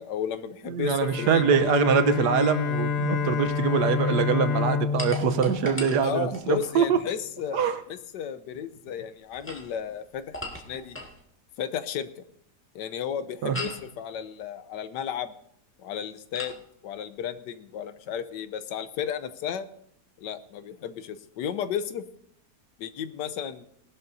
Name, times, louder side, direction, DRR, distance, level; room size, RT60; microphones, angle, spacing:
voice 1, 0.0-1.6 6.0-7.6 7.9-11.0 11.6-12.3 12.7-15.3 15.8-19.7 20.2-22.0 22.8-23.6, left 8 dB, 90° left, 12 dB, 1.4 m, -33 dB
voice 2, 0.7-7.0 7.5-7.8 13.4-13.6, right 6 dB, 75° right, 10 dB, 1.4 m, -24 dB
Bowed string instrument, 1.0-6.4, left 6 dB, 65° left, 0.6 m, -28 dB
sound 1, 5.0-6.8 9.2-11.2 13.5-13.9 16.3-16.6, left 1 dB, 5° left, 1.7 m, -38 dB
19.0 x 12.5 x 2.7 m, 0.71 s
omnidirectional pair, 1.8 m